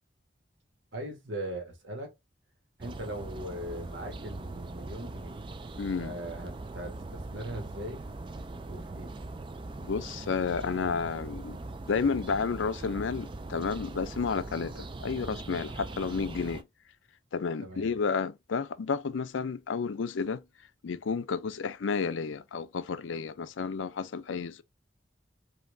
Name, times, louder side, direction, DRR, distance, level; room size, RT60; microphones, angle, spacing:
voice 1, 0.9-2.1 2.8-5.4 6.0-8.1 8.6-9.1 17.6-17.9, right 1 dB, 85° right, 1.6 m, -40 dB
sound 1, 2.8-16.6, right 2 dB, 25° right, 0.3 m, -41 dB
voice 2, 5.8-6.1 9.8-11.6 11.9-16.7 17.3-20.4 20.8-24.6, left 5 dB, 90° left, 0.5 m, -31 dB
5.2 x 2.8 x 2.6 m
head